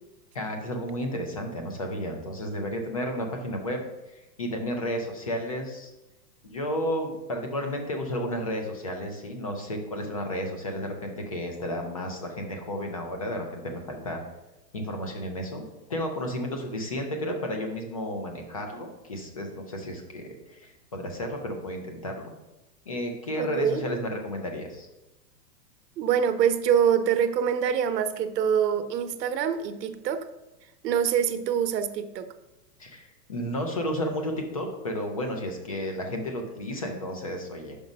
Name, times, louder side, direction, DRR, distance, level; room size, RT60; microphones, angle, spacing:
voice 1, 0.3-5.9 6.4-14.2 14.7-15.6 15.9-22.3 22.9-24.9 32.8-37.8, equal, 25° left, 3 dB, 0.4 m, -32 dB
voice 2, 23.4-23.8 26.0-30.2 30.8-32.3, right 8 dB, 80° right, 8 dB, 0.9 m, -25 dB
5.9 x 5.2 x 5.2 m, 0.97 s
supercardioid pair, 170°, 49 cm